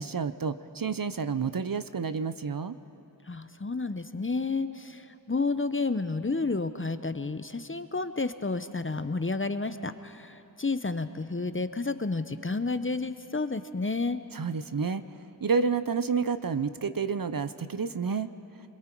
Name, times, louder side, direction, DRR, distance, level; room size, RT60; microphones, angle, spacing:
voice 1, 0.0-2.8 14.3-15.0 15.4-18.3, right 5 dB, 50° right, 13 dB, 0.6 m, -29 dB
voice 2, 3.3-14.2, left 3 dB, 30° left, 11 dB, 0.7 m, -31 dB
28.0 x 22.0 x 4.6 m, 2.9 s
wide cardioid pair, 45°, 44 cm